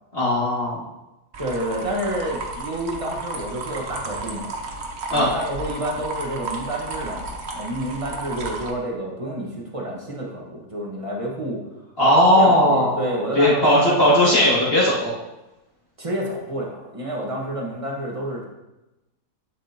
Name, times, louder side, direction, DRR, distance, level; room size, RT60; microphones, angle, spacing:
voice 1, 0.1-0.8 5.1-5.3 12.0-13.1 13.3-15.1, left 1 dB, 35° left, -7 dB, 2.4 m, -17 dB
sound 1, 1.3-8.7, right 2 dB, 45° right, 1.1 m, -33 dB
voice 2, 1.4-4.5 5.1-11.6 12.4-14.1 16.0-18.4, right 1 dB, 20° right, -2 dB, 1.4 m, -29 dB
11.0 x 5.8 x 2.9 m, 0.99 s
omnidirectional pair, 1.7 m